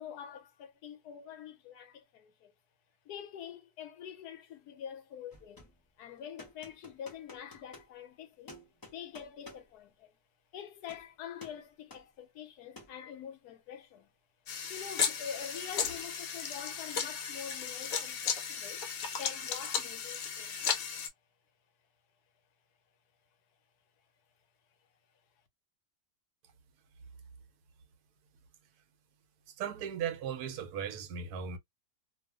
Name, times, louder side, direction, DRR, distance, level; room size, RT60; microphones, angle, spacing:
voice 1, 0.0-2.5 3.0-5.7 6.0-8.6 8.9-10.2 10.5-14.1 14.7-18.8 19.2-20.6, left 8 dB, 85° left, 1.2 m, -45 dB
sound 1, 5.3-5.8 6.4-7.9 8.5-9.7 10.8-11.1 11.4-11.6 11.9-12.1 12.8-13.0, left 2 dB, 35° left, 0.3 m, -52 dB
sound 2, 14.5-21.1, left 7 dB, 65° left, 1.1 m, -35 dB
voice 2, 29.6-31.6, right 8 dB, 80° right, 1.1 m, -37 dB
2.6 x 2.3 x 2.2 m
omnidirectional pair, 1.7 m